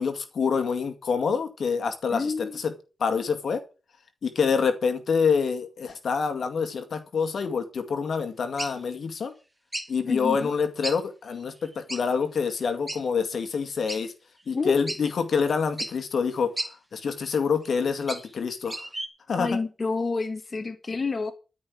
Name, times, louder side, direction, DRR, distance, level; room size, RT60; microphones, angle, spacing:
voice 1, 0.0-2.7 3.0-3.6 4.2-9.3 9.9-14.1 14.5-18.9 19.3-19.5, left 5 dB, 65° left, 2.1 m, -27 dB
voice 2, 2.1-2.6 10.1-10.5 14.5-15.1 19.3-21.3, left 4 dB, 40° left, 1.8 m, -29 dB
sound 1, 8.6-8.8 9.7-9.9 10.8-11.0 11.3-11.4 11.9-12.0 12.9-13.0 13.9-14.0 14.5-14.6 14.9-15.0 15.8-15.9 16.6-16.7 17.6-18.3 18.7-19.1, right 1 dB, 10° right, 2.4 m, -33 dB
13.0 x 5.6 x 8.6 m
cardioid pair, 75°, 0 cm